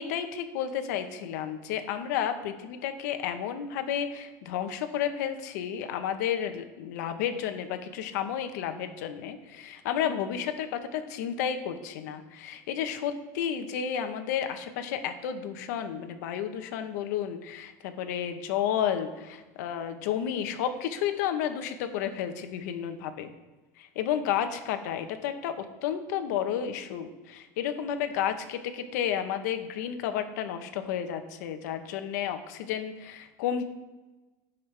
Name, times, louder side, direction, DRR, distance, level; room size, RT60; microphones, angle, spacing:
voice 1, 0.0-23.3 23.8-33.7, left 9 dB, 65° left, 8 dB, 1.1 m, -32 dB
16.5 x 5.5 x 3.4 m, 1.2 s
supercardioid pair, 180°, 10 cm